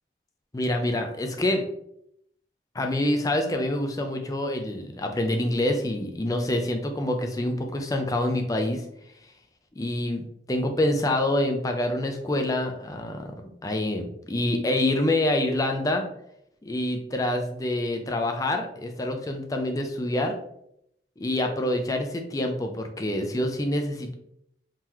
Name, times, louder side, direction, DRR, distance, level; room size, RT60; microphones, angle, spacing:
voice 1, 0.5-1.6 2.7-8.8 9.8-13.3 13.6-16.0 16.6-20.3 21.2-24.1, left 1 dB, 20° left, 4 dB, 0.4 m, -26 dB
3.8 x 2.8 x 2.9 m, 0.75 s
head